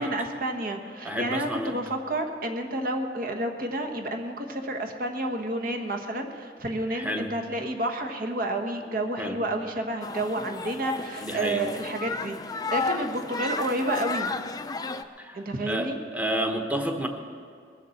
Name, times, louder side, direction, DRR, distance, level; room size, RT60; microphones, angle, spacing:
voice 1, 0.0-12.4 12.7-14.3 15.3-16.0, right 1 dB, 55° right, 4 dB, 1.3 m, -30 dB
voice 2, 1.0-1.8 6.9-7.3 9.2-9.4 11.2-11.6 15.2-15.4 15.7-15.9 16.1-17.1, right 1 dB, 10° right, 3 dB, 1.1 m, -30 dB
sound 1, 10.0-15.0, left 4 dB, 20° left, 0.5 m, -33 dB
21.0 x 7.2 x 7.1 m, 2.1 s
head